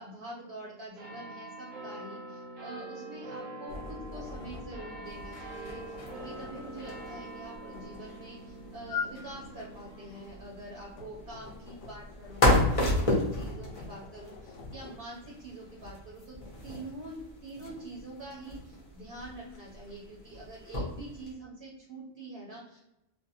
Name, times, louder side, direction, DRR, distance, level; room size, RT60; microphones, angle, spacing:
voice 1, 0.0-6.0 6.2-16.4 16.6-17.2 17.4-22.8, right 2 dB, 55° right, -4 dB, 0.8 m, -45 dB
sound 1, 1.0-13.8 14.5-14.6, right 2 dB, 85° right, 1.1 m, -45 dB
sound 2, 3.7-15.0, left 5 dB, 70° left, 0.9 m, -45 dB
sound 3, 5.0-21.3, left 1 dB, 35° left, 0.7 m, -34 dB
2.4 x 2.4 x 2.8 m, 0.90 s
omnidirectional pair, 1.3 m